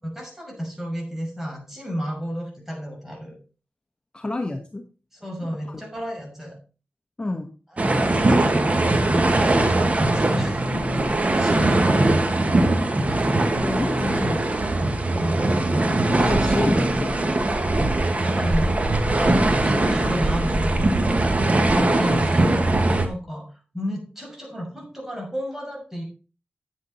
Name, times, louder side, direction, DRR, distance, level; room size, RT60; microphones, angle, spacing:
voice 1, 0.0-3.4 5.1-6.6 7.8-12.5 15.2-16.8 18.2-26.0, equal, 10° right, -1 dB, 6.1 m, -32 dB
voice 2, 4.1-4.8 5.4-5.8 7.2-7.5 13.2-14.8 16.2-17.1, left 2 dB, 25° left, 5 dB, 1.2 m, -29 dB
sound 1, 7.8-23.1, right 2 dB, 40° right, 1.7 m, -21 dB
9.4 x 8.5 x 4.2 m, 0.35 s
cardioid pair, 65°, 3 cm